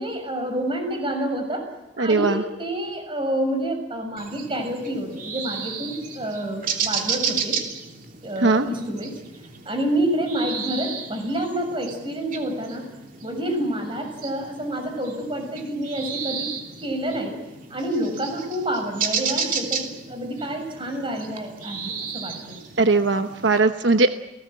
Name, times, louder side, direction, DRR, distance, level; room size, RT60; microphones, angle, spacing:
voice 1, 0.0-1.7 2.0-7.6 8.2-9.2 9.6-12.9 13.2-16.5 16.8-17.4 17.7-22.5, right 1 dB, 25° right, 4 dB, 6.7 m, -28 dB
voice 2, 2.0-2.4 8.4-8.7 22.8-24.2, right 3 dB, 75° right, 8 dB, 1.0 m, -19 dB
sound 1, 4.2-23.6, right 6 dB, 45° right, 3.1 m, -33 dB
30.0 x 18.5 x 7.6 m, 1.0 s
head